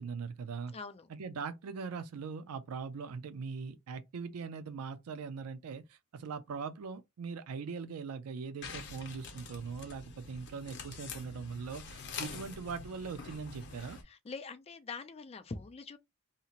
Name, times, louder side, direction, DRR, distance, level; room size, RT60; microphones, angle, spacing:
voice 1, 0.0-0.7 1.1-14.0, right 5 dB, 80° right, 0.4 m, -41 dB
voice 2, 0.7-1.1 14.0-16.0, left 4 dB, 30° left, 0.4 m, -44 dB
sound 1, 8.6-14.0, left 5 dB, 55° left, 0.7 m, -46 dB
2.8 x 2.4 x 2.9 m
head